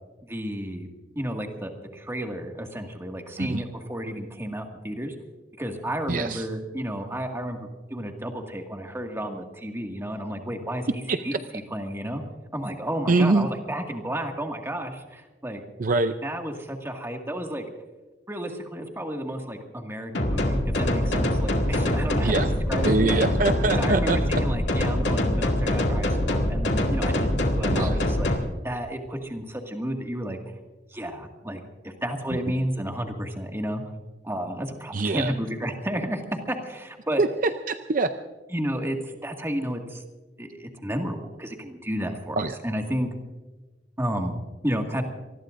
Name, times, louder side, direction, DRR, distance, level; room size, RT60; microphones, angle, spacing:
voice 1, 0.3-0.9 1.2-5.1 5.6-7.6 7.9-11.3 11.7-12.2 12.5-15.6 16.2-17.6 18.3-22.3 22.7-23.2 23.8-28.4 28.6-30.4 30.9-33.8 34.2-37.2 38.5-40.0 40.4-43.1 44.0-44.4 44.6-45.0, equal, 15° right, 2 dB, 2.0 m, -32 dB
voice 2, 6.1-6.5 11.1-11.4 13.1-13.5 15.8-16.1 22.2-22.5 22.8-24.4 27.7-28.0 34.9-35.3 37.2-38.1 42.4-42.6, right 3 dB, 50° right, 8 dB, 0.6 m, -24 dB
sound 1, 20.1-28.4, left 1 dB, 90° left, 2.1 m, -24 dB
27.0 x 20.0 x 2.6 m, 1.2 s
head